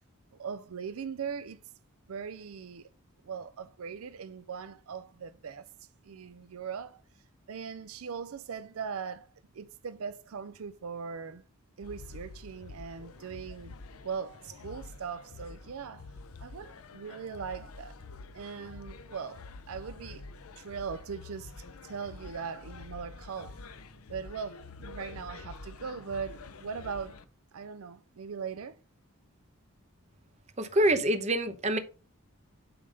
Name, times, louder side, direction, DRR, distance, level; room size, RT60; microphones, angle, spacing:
voice 1, 0.4-1.6 2.1-2.9 3.2-7.0 7.5-11.4 11.8-13.7 14.0-16.1 16.4-18.0 18.3-20.2 20.6-21.5 21.8-23.6 24.1-27.2 27.5-28.8, right 6 dB, 80° right, 0.5 m, -40 dB
sound 1, 11.8-27.2, left 3 dB, 85° left, 0.7 m, -47 dB
voice 2, 30.6-31.8, right 1 dB, 30° right, 0.9 m, -26 dB
8.8 x 3.4 x 5.2 m
head